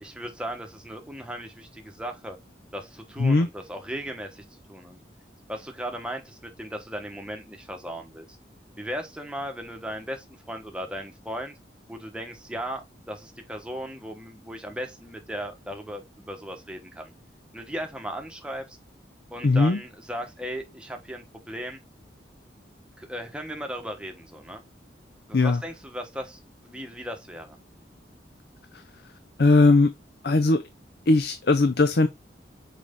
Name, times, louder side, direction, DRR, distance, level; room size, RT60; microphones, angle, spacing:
voice 1, 0.0-2.4 2.7-5.0 5.5-8.2 8.8-11.6 11.9-17.1 17.5-18.8 19.3-21.8 23.0-24.6 25.3-27.6, equal, 5° right, 1.1 m, -37 dB
voice 2, 19.4-19.8 25.3-25.6 28.7-28.8 29.4-29.9 30.2-30.6 31.1-32.1, left 3 dB, 60° left, 0.5 m, -19 dB
6.1 x 4.8 x 3.6 m
head